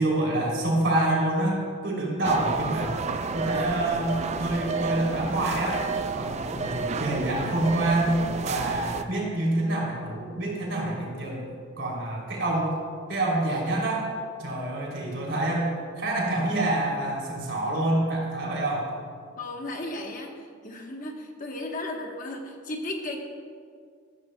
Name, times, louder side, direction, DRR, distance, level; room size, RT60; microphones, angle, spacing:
voice 1, 0.0-3.0 3.3-5.8 6.1-11.4 11.8-12.7 13.1-14.1 14.4-15.7 16.0-18.9, right 1 dB, 60° right, -3 dB, 3.0 m, -27 dB
sound 1, 2.2-9.0, right 4 dB, 30° right, 0.3 m, -31 dB
voice 2, 19.4-23.3, left 1 dB, 40° left, 2 dB, 1.1 m, -35 dB
13.5 x 12.5 x 2.2 m, 2.1 s
head